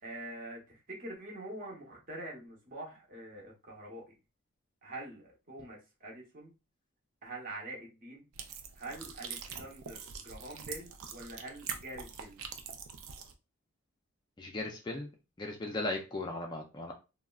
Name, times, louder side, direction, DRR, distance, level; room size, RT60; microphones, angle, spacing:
voice 1, 0.0-4.1 4.8-6.6 7.2-8.3 8.7-12.4, right 1 dB, 40° right, -2 dB, 0.9 m, -45 dB
sound 1, 8.3-13.3, right 6 dB, 80° right, 0.4 m, -44 dB
voice 2, 14.4-15.1 15.4-16.9, left 2 dB, 20° left, 1 dB, 0.3 m, -37 dB
3.5 x 2.0 x 2.3 m, 0.29 s
head